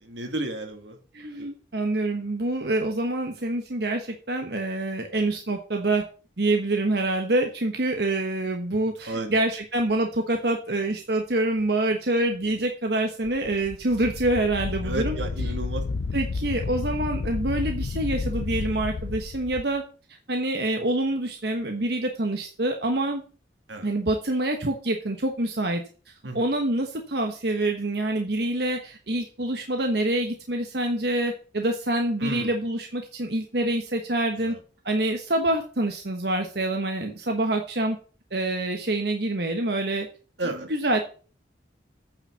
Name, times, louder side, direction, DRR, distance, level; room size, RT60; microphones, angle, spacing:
voice 1, 0.0-1.0 1.4-1.5 9.1-9.3 14.8-15.8 23.7-23.9 26.2-26.5 32.2-32.5 34.4-34.6 40.4-40.7, right 2 dB, 85° right, 5 dB, 2.2 m, -32 dB
voice 2, 1.1-6.0 6.4-15.2 16.1-19.8 20.3-23.2 23.8-25.8 26.3-34.5 34.8-38.0 38.3-40.1 40.4-41.0, right 1 dB, 60° right, 4 dB, 1.3 m, -26 dB
Wind, 13.2-19.7, left 4 dB, 75° left, 0.5 m, -31 dB
9.0 x 5.8 x 7.1 m, 0.38 s
head